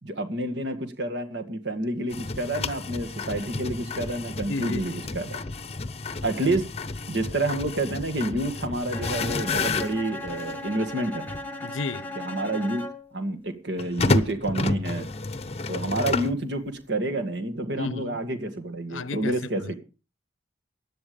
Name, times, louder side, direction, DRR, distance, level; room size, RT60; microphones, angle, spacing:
voice 1, 0.0-5.4 6.2-6.7 7.1-11.3 12.2-12.8 13.1-15.1 15.7-19.8, right 1 dB, 60° right, 2.1 m, -29 dB
sound 1, 2.1-10.6 11.3-11.4 13.8-16.4, left 3 dB, 30° left, 0.8 m, -30 dB
voice 2, 4.5-5.0 11.6-12.1 17.8-18.2 18.9-19.7, left 3 dB, 85° left, 0.7 m, -33 dB
Bowed string instrument, 8.9-13.2, left 1 dB, 10° left, 1.5 m, -37 dB
16.0 x 10.5 x 5.2 m
head